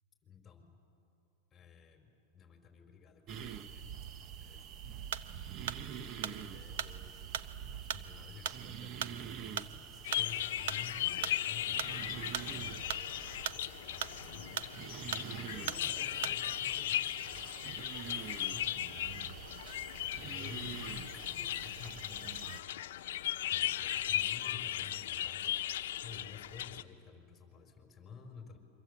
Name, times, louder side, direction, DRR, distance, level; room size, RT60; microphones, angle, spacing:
voice 1, 0.2-0.8 1.5-4.0 4.4-4.6 5.7-7.4 7.7-15.0 15.5-17.6 18.0-19.2 20.1-22.7 23.5-28.6, left 5 dB, 20° left, 4 dB, 4.8 m, -53 dB
sound 1, 3.3-22.6, right 9 dB, 40° right, 1.0 m, -46 dB
sound 2, 5.1-16.7, right 10 dB, 75° right, 0.9 m, -39 dB
sound 3, 10.0-26.8, left 12 dB, 80° left, 0.9 m, -37 dB
28.5 x 25.0 x 8.3 m, 2.6 s
supercardioid pair, 130°, 0 cm